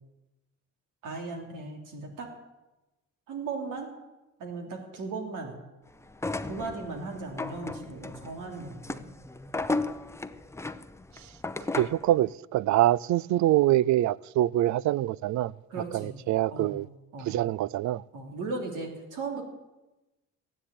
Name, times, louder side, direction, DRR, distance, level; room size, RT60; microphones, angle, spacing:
voice 1, 1.0-2.3 3.3-3.9 4.4-5.6 6.5-9.1 15.7-16.2 16.5-16.8 17.1-17.4 18.1-19.4, right 3 dB, 85° right, 3.3 m, -37 dB
sound 1, 6.1-12.1, left 2 dB, 10° left, 0.7 m, -35 dB
voice 2, 11.7-15.5 15.9-16.9 17.3-18.0, right 14 dB, 70° right, 0.4 m, -25 dB
14.5 x 10.0 x 8.6 m
cardioid pair, 90°, 30 cm